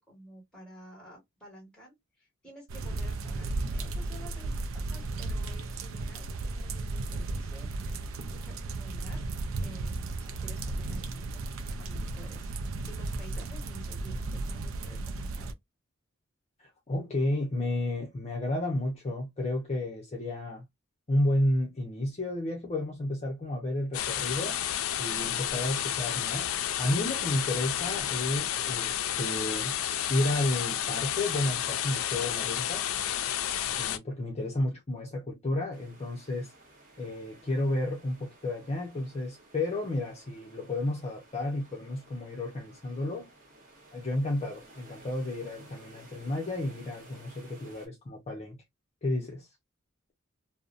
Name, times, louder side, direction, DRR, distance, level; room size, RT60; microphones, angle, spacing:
voice 1, 0.1-7.7 8.2-9.2 9.6-11.4 11.8-12.5 12.9-15.5, right 1 dB, 5° left, 1.4 m, -51 dB
sound 1, 2.7-15.5, right 2 dB, 70° right, 0.4 m, -35 dB
voice 2, 16.6-20.6 21.1-24.6 25.0-26.5 26.8-29.8 30.1-32.9 33.8-36.5 37.0-43.3 43.9-48.6 49.0-49.5, left 1 dB, 30° left, 0.6 m, -32 dB
sound 2, 23.9-34.0, left 10 dB, 85° left, 0.4 m, -31 dB
sound 3, 35.7-47.9, right 2 dB, 40° right, 1.0 m, -56 dB
2.7 x 2.1 x 2.4 m
head